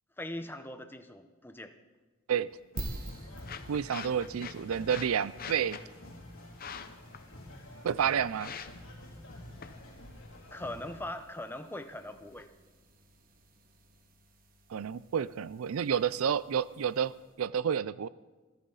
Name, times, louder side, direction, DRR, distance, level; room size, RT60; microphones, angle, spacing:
voice 1, 0.2-1.7 10.5-12.5, left 1 dB, 10° left, 8 dB, 0.9 m, -41 dB
sound 1, 2.5-12.5, left 7 dB, 45° left, 0.9 m, -48 dB
sound 2, 2.7-11.0, left 1 dB, 70° left, 4.1 m, -49 dB
sound 3, 2.8-17.5, right 1 dB, 45° right, 1.6 m, -50 dB
voice 2, 3.7-5.8 7.8-8.5 14.7-18.1, right 8 dB, 85° right, 18 dB, 0.4 m, -30 dB
25.0 x 14.0 x 4.0 m, 1.3 s
head